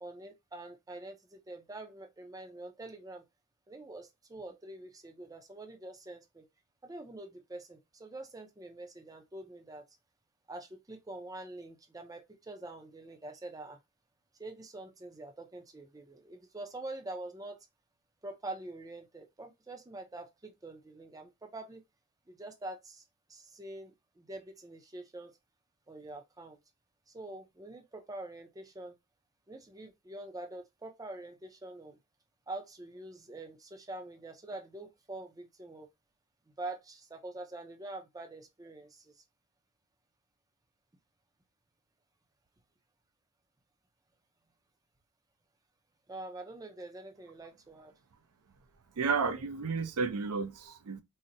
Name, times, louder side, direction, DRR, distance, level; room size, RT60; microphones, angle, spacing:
voice 1, 0.0-3.3 3.7-6.5 6.8-9.8 10.5-13.8 14.4-17.6 18.2-21.8 22.3-23.0 23.3-25.4 25.9-26.6 27.1-29.0 29.5-32.0 32.5-35.9 36.5-39.2 46.1-47.9, right 2 dB, 15° right, 0.5 m, -45 dB
voice 2, 49.0-51.0, right 5 dB, 90° right, 0.5 m, -32 dB
3.9 x 2.0 x 2.5 m
head